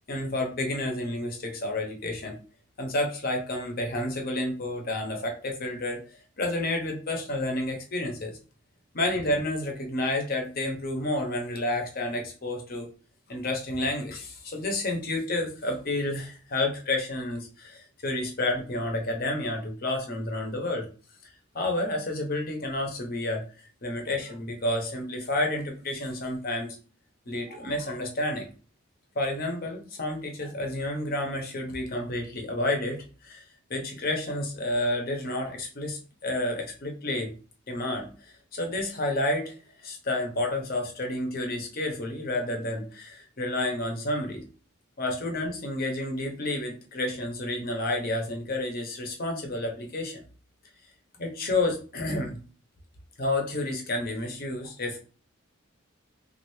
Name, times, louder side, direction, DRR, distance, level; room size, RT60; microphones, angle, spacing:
voice 1, 0.1-2.4 2.8-8.4 8.9-12.9 13.3-20.9 21.5-26.8 27.3-28.5 29.1-37.3 37.7-38.1 38.5-44.5 45.0-50.2 51.2-52.4 53.2-55.0, left 1 dB, 45° left, 2 dB, 0.8 m, -30 dB
3.2 x 2.5 x 3.1 m, 0.38 s
head